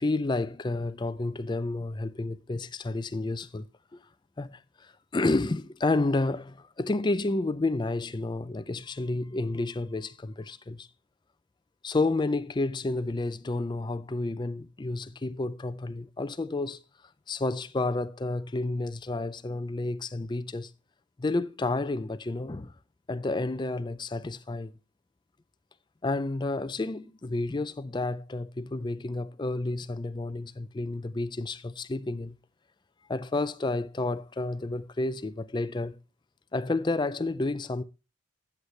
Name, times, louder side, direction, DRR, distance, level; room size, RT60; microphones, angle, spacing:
voice 1, 0.0-3.7 3.9-4.0 4.4-10.9 11.8-16.8 17.3-20.7 21.2-22.7 23.1-24.7 26.0-32.4 33.1-36.0 36.5-37.8, left 2 dB, 20° left, 0.4 m, -30 dB
13.5 x 7.9 x 3.2 m
head